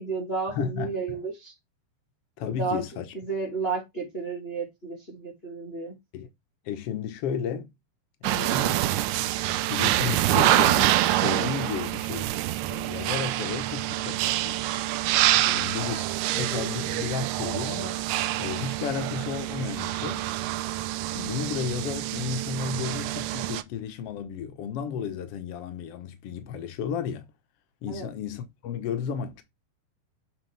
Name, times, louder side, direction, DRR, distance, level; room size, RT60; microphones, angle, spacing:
voice 1, 0.0-1.5 2.5-2.8 3.1-6.0 15.4-15.7 27.9-28.1, right 4 dB, 30° left, 1.2 m, -32 dB
voice 2, 0.6-1.2 2.4-3.0 6.1-6.3 6.6-7.7 8.2-8.9 9.7-12.3 12.6-14.6 15.3-16.1 16.4-18.0 18.4-20.3 21.1-27.2 27.8-29.4, left 7 dB, 90° left, 1.3 m, -33 dB
sound 1, 8.2-23.6, right 15 dB, 85° right, 1.9 m, -26 dB
7.5 x 5.2 x 3.4 m
omnidirectional pair, 4.3 m